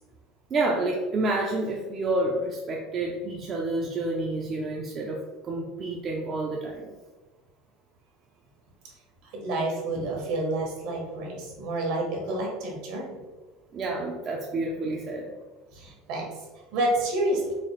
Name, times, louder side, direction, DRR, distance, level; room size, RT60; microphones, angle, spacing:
voice 1, 0.5-6.9 13.7-15.3, right 2 dB, 25° right, -1 dB, 0.3 m, -29 dB
voice 2, 9.2-13.2 15.7-16.3 16.7-17.4, right 1 dB, 60° right, -1 dB, 1.1 m, -29 dB
4.0 x 2.4 x 3.1 m, 1.2 s
cardioid pair, 165°, 0 cm